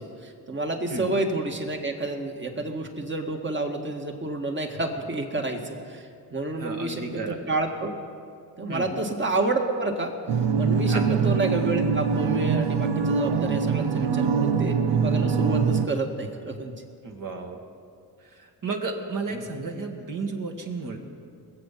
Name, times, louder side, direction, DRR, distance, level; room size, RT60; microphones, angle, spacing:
voice 1, 0.0-7.9 8.6-10.1 10.6-16.7 19.3-19.5, right 2 dB, 25° right, 3 dB, 1.8 m, -29 dB
voice 2, 6.5-7.4 8.7-8.9 10.9-11.1 17.0-17.6 18.3-21.0, right 3 dB, 50° right, 2 dB, 2.1 m, -33 dB
sound 1, 10.3-15.9, right 6 dB, 85° right, 0.9 m, -23 dB
21.0 x 7.9 x 5.9 m, 2.3 s
cardioid pair, 75°, 42 cm